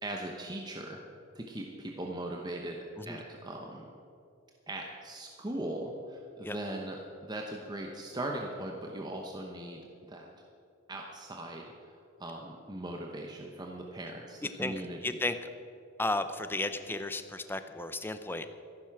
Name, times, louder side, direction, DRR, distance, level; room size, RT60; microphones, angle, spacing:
voice 1, 0.0-1.0 1.3-3.9 4.7-9.8 10.1-10.3 10.9-15.1, right 1 dB, 20° right, 1 dB, 0.9 m, -39 dB
voice 2, 14.4-15.5 16.0-18.5, left 2 dB, 10° left, 10 dB, 0.6 m, -34 dB
13.5 x 11.5 x 6.0 m, 2.6 s
head